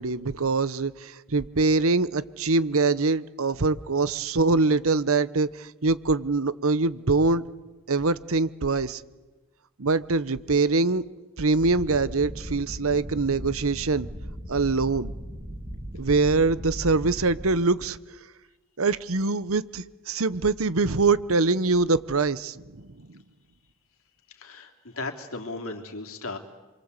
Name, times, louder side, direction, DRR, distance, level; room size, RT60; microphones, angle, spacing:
voice 1, 0.0-7.4 7.9-9.0 9.8-11.0 11.4-14.1 14.5-15.1 16.0-18.0 18.8-23.1, right 3 dB, 70° right, 16 dB, 1.0 m, -24 dB
sound 1, 11.6-17.6, equal, 25° right, 2.6 m, -37 dB
voice 2, 24.3-26.4, left 3 dB, 70° left, 4 dB, 3.3 m, -36 dB
28.0 x 24.0 x 8.3 m, 1.2 s
head